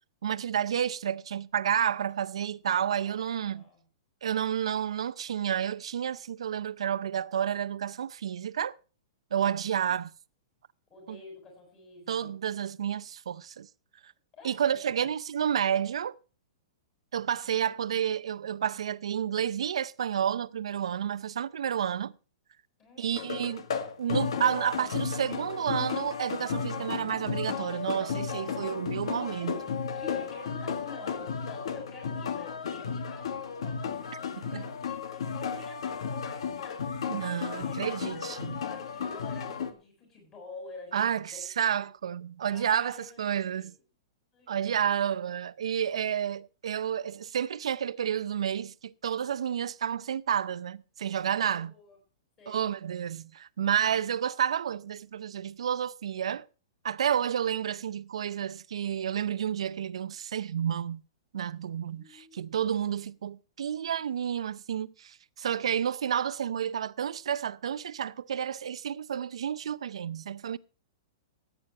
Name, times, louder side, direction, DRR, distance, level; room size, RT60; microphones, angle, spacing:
voice 1, 0.2-3.6 4.2-8.8 9.3-10.1 11.1-11.2 12.1-13.7 14.0-14.1 14.4-16.1 17.1-22.1 23.0-23.6 24.0-29.5 34.5-34.6 37.1-38.5 40.9-43.7 44.5-51.7 52.5-56.4 56.8-61.0 61.3-70.6, right 9 dB, 85° right, 0.6 m, -30 dB
voice 2, 2.7-3.9 9.4-9.7 10.9-12.3 14.3-14.6 14.8-15.1 17.4-17.7 22.8-23.4 29.4-37.7 38.0-41.4 42.5-43.7 44.3-44.5 51.4-52.0 52.4-52.7 61.8-62.9, left 3 dB, 20° left, 6.8 m, -49 dB
sound 1, 23.1-39.7, left 6 dB, 70° left, 1.6 m, -34 dB
16.0 x 9.1 x 4.5 m
hypercardioid pair, 170°, 3 cm